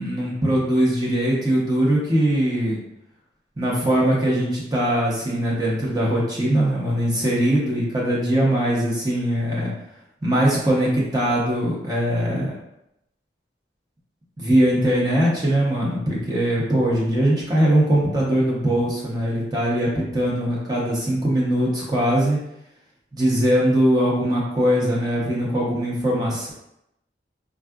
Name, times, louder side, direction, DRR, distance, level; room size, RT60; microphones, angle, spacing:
voice 1, 0.0-2.8 3.6-9.7 10.2-12.5 14.4-22.4 23.1-26.5, right 1 dB, 20° right, -5 dB, 0.7 m, -21 dB
3.5 x 2.3 x 2.3 m, 0.82 s
head